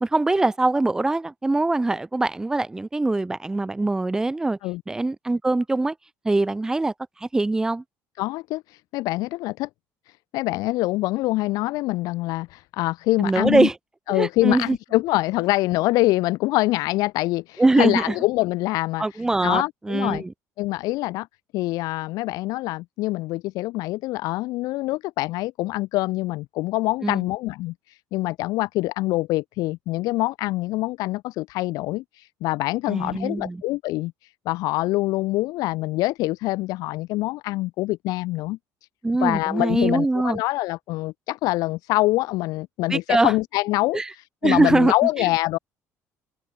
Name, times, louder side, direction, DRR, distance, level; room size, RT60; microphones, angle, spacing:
voice 1, 0.0-4.6 4.9-5.9 6.2-7.8 13.2-13.7 14.1-14.8 17.6-18.1 19.0-20.3 27.0-27.2 32.9-33.6 39.0-40.4 42.9-43.3 43.9-44.1 44.4-45.3, right 2 dB, 10° right, 0.6 m, -22 dB
voice 2, 8.2-9.7 10.1-13.7 14.1-20.2 20.6-21.3 21.5-38.6 39.2-45.6, left 19 dB, 75° left, 1.8 m, -25 dB
open air
cardioid pair, 150°, 6 cm